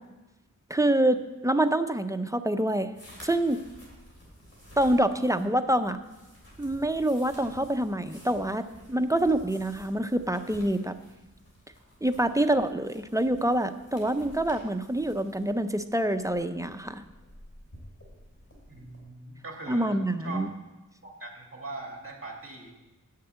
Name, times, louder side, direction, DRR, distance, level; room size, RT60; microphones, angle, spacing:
voice 1, 0.7-2.9 3.2-3.6 4.8-6.0 6.6-10.9 12.0-17.0 19.7-20.5, right 1 dB, 10° right, 8 dB, 0.5 m, -26 dB
sound 1, 2.9-19.0, equal, 45° left, 3.5 m, -52 dB
voice 2, 18.7-20.4 21.0-22.7, right 2 dB, 40° right, 1 dB, 2.1 m, -41 dB
7.2 x 6.6 x 8.0 m, 1.1 s
wide cardioid pair, 75°, 32 cm